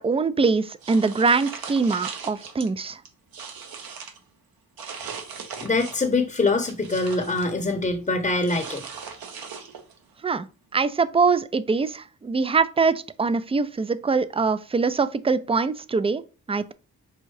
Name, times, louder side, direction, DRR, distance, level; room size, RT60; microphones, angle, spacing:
voice 1, 0.0-3.0 10.2-10.5 10.7-16.2 16.5-16.7, right 4 dB, 15° right, 0.3 m, -23 dB
sound 1, 0.8-2.7 3.1-4.2 4.8-6.1 6.5-7.5 8.5-10.0, right 6 dB, 65° right, 0.9 m, -38 dB
voice 2, 5.6-8.8, left 3 dB, 20° left, 0.7 m, -24 dB
5.5 x 2.6 x 3.1 m
supercardioid pair, 55°, 38 cm